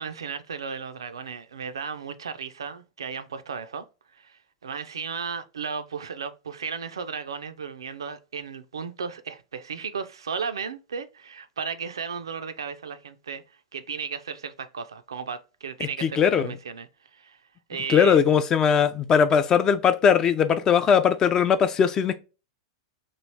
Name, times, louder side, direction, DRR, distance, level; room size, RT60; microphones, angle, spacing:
voice 1, 0.0-3.8 4.1-13.4 13.7-17.4 17.7-18.2, right 6 dB, 80° right, 0.4 m, -35 dB
voice 2, 16.0-16.5 17.9-22.2, left 7 dB, 25° left, 0.4 m, -20 dB
3.1 x 2.4 x 3.2 m
hypercardioid pair, 100°, 2 cm